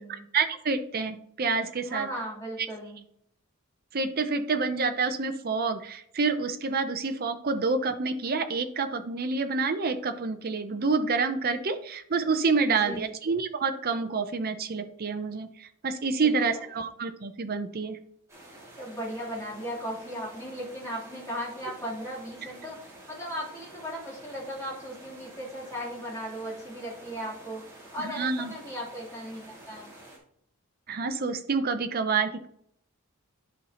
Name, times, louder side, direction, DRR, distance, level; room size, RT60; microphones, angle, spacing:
voice 1, 0.3-2.1 3.9-18.0 28.0-28.5 30.9-32.5, right 4 dB, 40° right, 7 dB, 0.6 m, -28 dB
voice 2, 1.8-3.0 12.6-13.1 16.2-16.7 18.8-29.9, equal, 15° left, -7 dB, 3.2 m, -37 dB
sound 1, 18.3-30.2, right 1 dB, 15° right, 2.4 m, -49 dB
11.0 x 5.6 x 2.9 m, 0.69 s
head